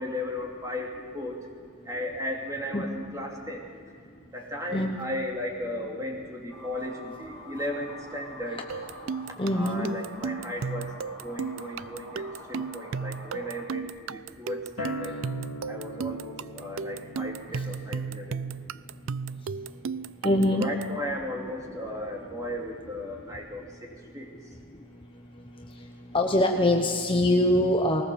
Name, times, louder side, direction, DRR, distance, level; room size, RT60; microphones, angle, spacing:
voice 1, 0.0-1.4 1.9-3.6 4.3-8.6 9.5-10.9 11.2-15.2 15.7-18.4 20.6-23.6 24.1-24.3, left 1 dB, 15° right, 0 dB, 2.8 m, -35 dB
sound 1, 6.5-13.7, left 1 dB, ahead, 4.7 m, -47 dB
sound 2, 8.7-21.0, right 5 dB, 65° right, 0.4 m, -35 dB
voice 2, 9.4-9.9 17.6-17.7 20.2-20.7 26.1-28.0, left 1 dB, 25° left, 3 dB, 1.0 m, -23 dB
Acoustic guitar, 14.8-20.0, left 1 dB, 80° left, 1.1 m, -42 dB
20.5 x 19.5 x 7.0 m, 2.3 s
head